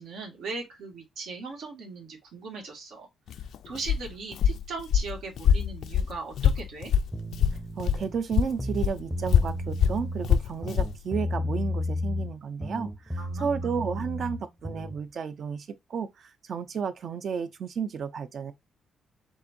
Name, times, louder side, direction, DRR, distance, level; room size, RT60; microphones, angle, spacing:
voice 1, 0.0-3.1 3.3-6.9 13.2-13.5, right 3 dB, 75° right, 2.0 m, -39 dB
Walk footsteps, 3.3-8.1 8.3-11.0, left 8 dB, 65° left, 0.4 m, -25 dB
sound 1, 7.1-8.2 8.5-10.3 10.6-12.3 12.6-15.0, left 1 dB, 5° right, 0.7 m, -33 dB
voice 2, 7.8-18.5, right 6 dB, 45° right, 0.6 m, -32 dB
7.2 x 2.6 x 2.6 m
cardioid pair, 155°, 0 cm